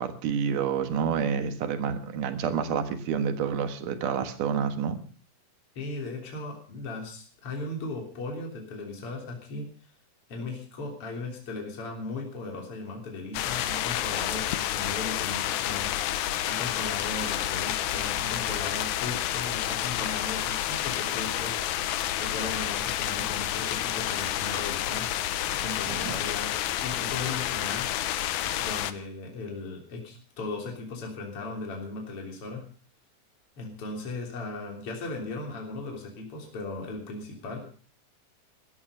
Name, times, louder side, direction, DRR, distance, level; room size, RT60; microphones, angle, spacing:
voice 1, 0.0-5.0 25.9-26.2, right 7 dB, 80° right, 9 dB, 3.0 m, -29 dB
voice 2, 5.8-9.7 10.3-21.6 22.2-25.1 25.6-26.5 26.8-27.9 28.6-32.6 33.6-37.6, left 3 dB, 45° left, 0 dB, 4.2 m, -37 dB
sound 1, 13.3-28.9, left 12 dB, 75° left, 2.2 m, -29 dB
15.5 x 13.5 x 5.5 m, 0.41 s
omnidirectional pair, 3.6 m